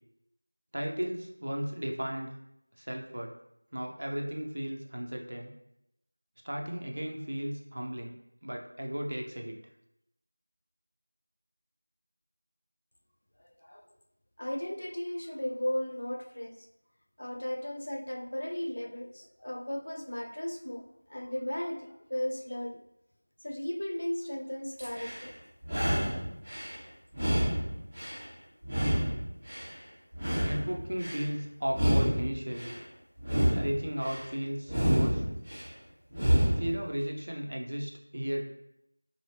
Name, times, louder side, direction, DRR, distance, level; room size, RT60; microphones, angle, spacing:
voice 1, 0.7-2.3 2.8-3.3 3.7-5.5 6.4-9.6 30.4-32.8 33.5-35.3 36.6-38.4, equal, 45° right, 1 dB, 0.5 m, -35 dB
voice 2, 13.4-13.9 14.4-16.7 17.2-20.8 21.1-22.8 23.4-25.3, left 1 dB, 50° left, 5 dB, 0.3 m, -35 dB
sound 1, 24.8-25.3 25.6-26.7 27.1-28.3 28.6-29.7 30.1-31.2 31.7-32.8 33.2-34.2 34.7-35.7 36.1-36.7, equal, 10° right, 0.8 m, -28 dB
3.0 x 2.6 x 2.8 m, 0.83 s
figure-of-eight pair, 175°, 0 cm